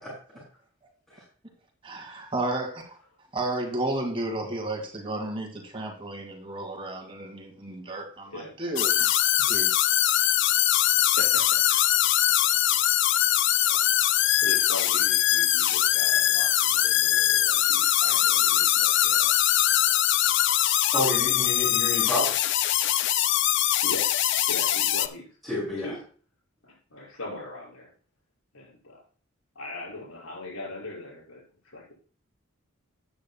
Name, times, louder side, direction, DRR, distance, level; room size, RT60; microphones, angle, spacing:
voice 1, 1.8-3.0 3.3-9.1 9.5-9.7 12.3-12.4, right 2 dB, 25° right, 1 dB, 2.1 m, -32 dB
sound 1, 8.8-25.1, left 12 dB, 55° left, 0.4 m, -22 dB
voice 2, 10.8-11.6 13.7-13.8 14.4-19.3 23.8-24.1 24.5-25.3 25.8-26.0 26.6-27.9 28.5-29.0 29.5-31.4 31.7-31.9, left 2 dB, 80° left, -4 dB, 5.7 m, -40 dB
voice 3, 20.9-22.3 25.4-25.9, equal, ahead, -8 dB, 5.6 m, -29 dB
13.0 x 9.0 x 2.3 m, 0.41 s
head